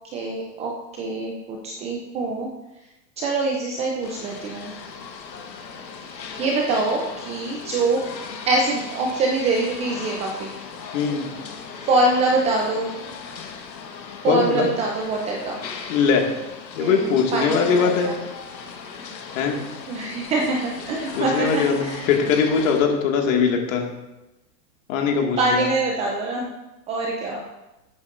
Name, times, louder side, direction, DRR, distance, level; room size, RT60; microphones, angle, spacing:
voice 1, 0.1-0.7 1.0-2.5 3.2-4.7 6.1-8.1 8.5-10.5 11.8-12.9 14.2-15.6 16.8-18.1 19.9-22.1 23.3-23.4 25.4-26.5 26.9-27.4, right 2 dB, 15° right, 0 dB, 0.5 m, -24 dB
sound 1, 4.0-22.8, left 5 dB, 85° left, 1.5 m, -37 dB
voice 2, 10.9-11.3 14.3-14.7 15.9-16.3 16.7-18.1 19.3-19.6 21.1-23.9 24.9-25.7, left 6 dB, 50° left, 1 dB, 2.1 m, -21 dB
14.0 x 8.3 x 2.6 m, 1.0 s
hypercardioid pair, 130°, 50 cm